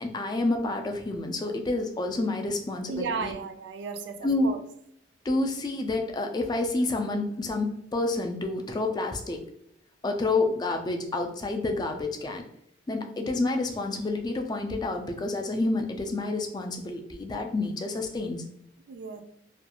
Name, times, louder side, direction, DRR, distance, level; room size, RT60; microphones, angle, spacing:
voice 1, 0.0-3.3 4.2-4.5 5.3-9.4 10.0-12.4 12.9-18.4, left 2 dB, 20° left, 4 dB, 0.3 m, -29 dB
voice 2, 2.9-4.6 18.9-19.2, right 4 dB, 65° right, 8 dB, 0.3 m, -34 dB
2.4 x 2.2 x 2.8 m, 0.73 s
head